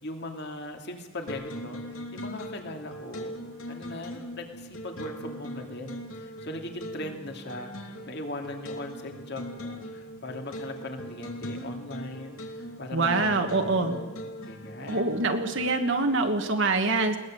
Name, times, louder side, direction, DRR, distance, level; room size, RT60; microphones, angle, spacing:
voice 1, 0.0-1.8 2.1-3.3 3.7-14.1 14.4-15.1, left 1 dB, 50° left, 4 dB, 2.5 m, -39 dB
sound 1, 1.3-16.0, equal, 70° left, 2.8 m, -40 dB
voice 2, 12.9-14.0 14.9-17.2, right 3 dB, 55° right, 4 dB, 1.4 m, -25 dB
21.0 x 19.0 x 7.7 m, 1.3 s
head